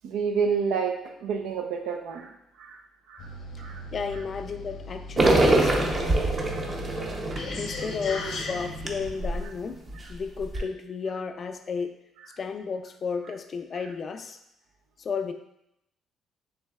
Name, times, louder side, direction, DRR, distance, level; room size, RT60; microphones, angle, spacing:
voice 1, 0.0-0.9 1.2-2.3 2.6-2.8 3.1-3.3 3.6-3.8 6.9-7.0 7.3-7.4, right 6 dB, 85° right, 3 dB, 0.6 m, -29 dB
sound 1, 3.2-9.1, left 2 dB, 65° left, 0.8 m, -38 dB
voice 2, 3.9-6.2 7.6-9.8 10.1-11.9 12.4-14.4 15.0-15.3, left 5 dB, 45° left, 8 dB, 0.4 m, -33 dB
sound 2, 5.2-9.4 9.9-10.0 10.4-10.6, right 2 dB, 30° right, 0.7 m, -24 dB
6.2 x 3.2 x 2.3 m, 0.80 s
cardioid pair, 95°, 0 cm